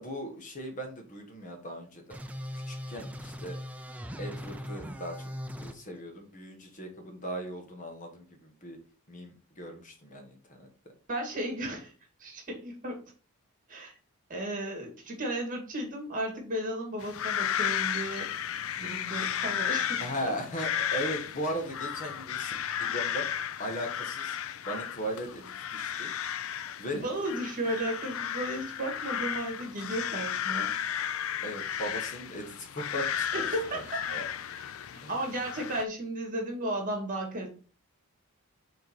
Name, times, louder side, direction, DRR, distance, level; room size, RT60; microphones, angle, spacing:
voice 1, 0.0-2.2 2.5-3.6 4.2-5.3 5.6-8.8 9.1-10.7 20.0-23.3 23.6-24.4 24.6-26.1 26.8-27.0 31.4-33.3 33.7-33.8 34.1-34.3 35.0-35.1, equal, 35° left, 4 dB, 1.3 m, -38 dB
sound 1, 2.1-5.8, equal, 5° right, 0.5 m, -39 dB
voice 2, 11.1-11.9 12.2-13.0 13.7-13.9 14.3-18.3 18.8-20.3 27.0-30.7 33.3-34.0 34.5-34.6 34.9-37.5, right 1 dB, 35° right, 2 dB, 2.1 m, -34 dB
sound 2, 17.0-35.8, left 9 dB, 65° left, 0.4 m, -34 dB
6.4 x 3.9 x 4.5 m, 0.38 s
head